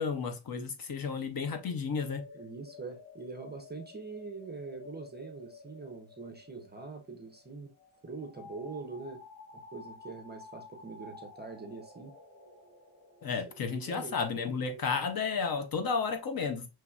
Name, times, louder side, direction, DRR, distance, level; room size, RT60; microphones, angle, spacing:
voice 1, 0.0-2.2 13.2-16.7, left 5 dB, 45° left, 0.7 m, -32 dB
sound 1, 1.6-14.8, left 2 dB, 20° left, 2.3 m, -52 dB
voice 2, 2.3-7.7 8.0-9.2 9.5-12.2 13.5-14.2, right 4 dB, 20° right, 0.5 m, -43 dB
5.6 x 3.1 x 2.3 m
wide cardioid pair, 180°, 50 cm